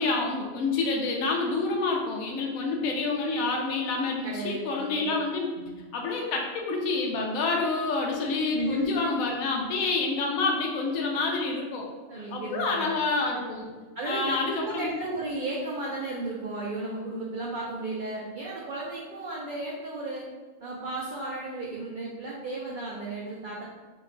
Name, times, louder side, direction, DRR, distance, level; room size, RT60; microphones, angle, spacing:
voice 1, 0.0-5.5 5.9-11.9 12.3-13.7 14.0-14.9, left 3 dB, 80° left, 0 dB, 1.0 m, -28 dB
voice 2, 4.2-5.1 5.6-5.7 8.5-9.1 12.1-12.9 14.0-20.2 20.6-23.6, right 2 dB, 65° right, -5 dB, 0.5 m, -34 dB
3.0 x 2.2 x 3.6 m, 1.3 s
omnidirectional pair, 1.4 m